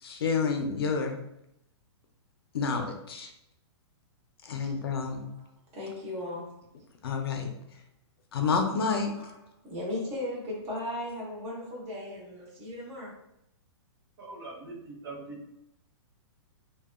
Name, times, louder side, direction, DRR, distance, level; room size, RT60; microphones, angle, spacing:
voice 1, 0.0-1.2 2.5-3.3 4.4-5.3 7.0-7.5 8.3-9.1, left 5 dB, 55° left, 4 dB, 0.4 m, -29 dB
voice 2, 5.7-6.6 9.2-9.4 9.6-13.2, left 1 dB, 15° right, -4 dB, 0.5 m, -36 dB
voice 3, 14.2-15.4, right 3 dB, 55° right, -2 dB, 0.8 m, -42 dB
2.6 x 2.1 x 2.3 m, 0.80 s
hypercardioid pair, 175°, 15 cm